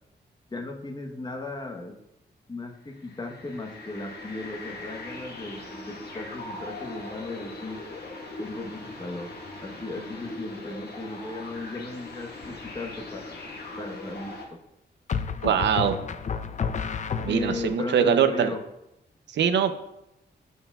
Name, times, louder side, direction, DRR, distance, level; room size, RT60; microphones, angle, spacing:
voice 1, 0.5-1.9 2.5-7.8 8.4-9.3 9.6-14.6 17.2-18.6, left 2 dB, 25° left, 3 dB, 1.0 m, -36 dB
sound 1, 2.8-14.5, left 2 dB, 65° left, 1.2 m, -40 dB
sound 2, 12.4-12.9 15.1-17.8, left 6 dB, 40° left, 0.4 m, -31 dB
voice 2, 15.4-16.0 17.2-18.5 19.3-19.7, right 8 dB, 75° right, 9 dB, 0.6 m, -22 dB
13.0 x 4.5 x 2.3 m, 0.85 s
wide cardioid pair, 105°, 19 cm